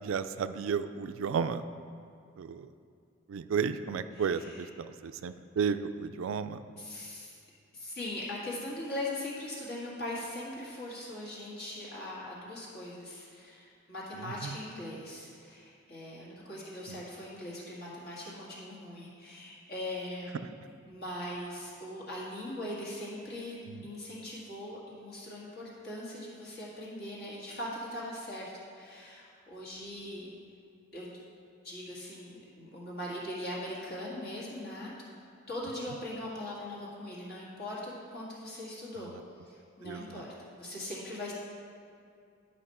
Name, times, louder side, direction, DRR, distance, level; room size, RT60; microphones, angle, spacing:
voice 1, 0.0-1.6 2.4-2.7 3.3-6.6 14.2-14.6 16.9-17.0 23.6-23.8 39.0-39.2 39.8-40.2, right 6 dB, 80° right, 11 dB, 0.3 m, -33 dB
voice 2, 4.1-4.6 6.8-7.3 7.7-20.4 20.9-30.3 30.9-31.2 31.6-34.9 35.5-39.1 39.4-41.3, left 1 dB, 50° left, -5 dB, 1.8 m, -40 dB
10.0 x 5.1 x 4.2 m, 2.4 s
head